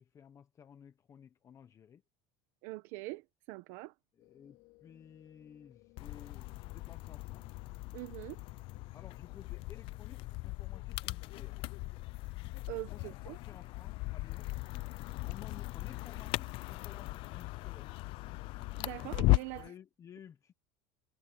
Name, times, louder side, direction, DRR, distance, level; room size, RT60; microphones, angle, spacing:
voice 1, 0.0-2.0 4.1-7.5 8.9-11.6 12.7-14.5 15.3-17.9 19.5-20.5, left 8 dB, 25° left, 1.0 m, -55 dB
voice 2, 2.6-3.9 7.9-8.4 12.7-13.4 18.8-19.7, right 21 dB, 65° right, 1.2 m, -43 dB
sound 1, 4.2-9.8, left 25 dB, 70° left, 3.3 m, -64 dB
sound 2, 6.0-19.7, left 21 dB, 45° left, 0.4 m, -37 dB
cardioid pair, 160°, 12 cm